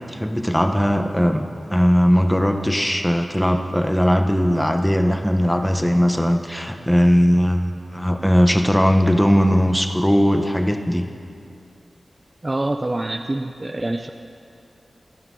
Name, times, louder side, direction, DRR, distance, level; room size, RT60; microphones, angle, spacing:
voice 1, 0.0-1.4 1.7-11.1, equal, 5° left, 5 dB, 0.9 m, -19 dB
voice 2, 12.4-14.1, right 2 dB, 25° right, 5 dB, 0.5 m, -25 dB
26.0 x 9.9 x 3.8 m, 2.5 s
wide cardioid pair, 105°, 0 cm